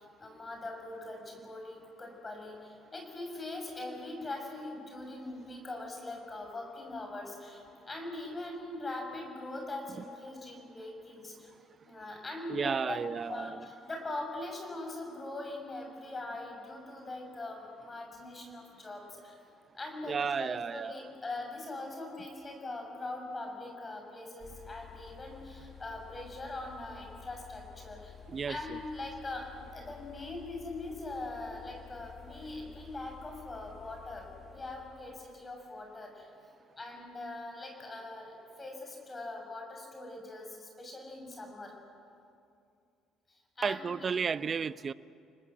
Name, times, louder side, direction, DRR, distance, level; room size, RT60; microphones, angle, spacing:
voice 1, 0.2-7.6 7.8-11.5 11.8-13.0 13.3-19.4 19.7-28.1 28.5-36.3 36.8-41.7 43.3-44.1, left 2 dB, 25° left, 2 dB, 6.1 m, -42 dB
voice 2, 12.5-13.6 20.0-21.1 28.3-28.6 43.6-44.9, right 6 dB, 40° right, 17 dB, 0.6 m, -33 dB
sound 1, 24.4-35.3, left 7 dB, 45° left, 1.7 m, -52 dB
30.0 x 19.5 x 7.4 m, 2.5 s
supercardioid pair, 75°, 0 cm